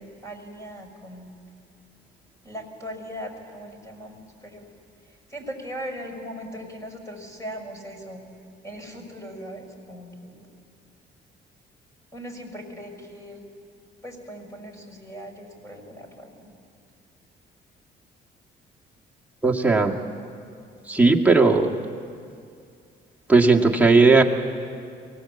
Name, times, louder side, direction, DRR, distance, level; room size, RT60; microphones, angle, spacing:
voice 1, 0.0-1.3 2.4-4.7 5.0-8.3 8.6-10.4 12.1-13.4 14.0-16.5, equal, 15° left, 3 dB, 6.2 m, -39 dB
voice 2, 19.4-19.9 20.9-21.7 23.3-24.2, right 3 dB, 5° right, 0 dB, 2.0 m, -16 dB
23.5 x 18.5 x 8.6 m, 2.3 s
cardioid pair, 90°, 20 cm